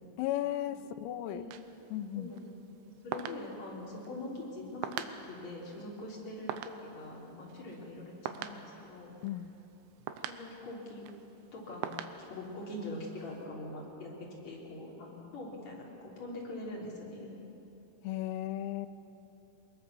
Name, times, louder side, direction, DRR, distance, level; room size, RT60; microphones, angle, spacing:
voice 1, 0.2-1.5 1.9-2.3 9.2-9.5 18.0-18.9, left 13 dB, 85° left, 8 dB, 3.5 m, -35 dB
sound 1, 1.5-13.5, right 9 dB, 80° right, 2.9 m, -45 dB
voice 2, 2.2-9.1 10.3-11.1 11.5-17.4, left 1 dB, 35° left, -3 dB, 4.1 m, -43 dB
23.0 x 21.5 x 6.9 m, 2.8 s
omnidirectional pair, 6.0 m